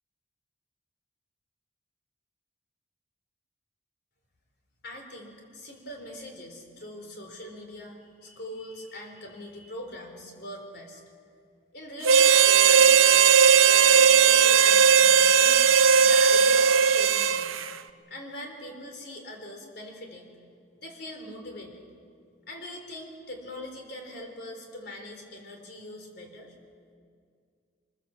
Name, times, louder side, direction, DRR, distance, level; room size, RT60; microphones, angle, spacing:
voice 1, 4.8-11.0 11.7-13.2 13.6-15.7 15.9-17.7 18.1-20.3 20.8-21.8 22.5-26.5, left 1 dB, 55° left, 3 dB, 3.9 m, -41 dB
Harmonica, 12.0-17.7, right 7 dB, 90° right, 0.7 m, -18 dB
24.0 x 21.5 x 7.5 m, 2.2 s
head